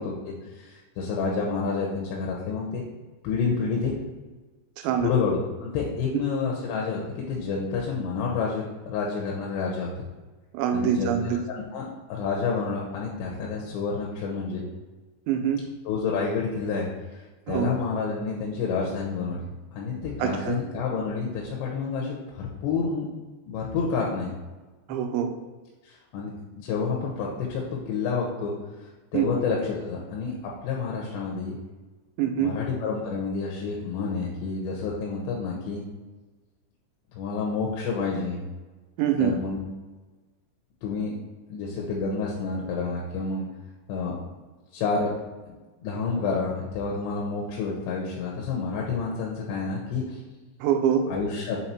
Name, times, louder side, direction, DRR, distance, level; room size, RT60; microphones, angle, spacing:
voice 1, 0.0-2.8 3.2-3.9 5.0-9.9 10.7-14.6 15.9-16.9 17.1-23.1 23.5-24.3 24.9-25.0 25.8-30.4 30.6-31.6 32.4-35.8 37.1-38.4 39.2-39.7 40.8-41.2 41.5-43.5 43.9-44.2 44.7-45.1 45.5-50.2 51.1-51.6, left 4 dB, 80° left, -2 dB, 3.0 m, -29 dB
voice 2, 10.5-11.4 15.3-15.6 17.5-17.7 20.2-20.6 24.9-25.3 29.1-29.3 32.2-32.5 39.0-39.3 50.6-51.0, right 9 dB, 85° right, 5 dB, 3.0 m, -24 dB
7.3 x 3.6 x 4.3 m, 1.2 s
omnidirectional pair, 5.1 m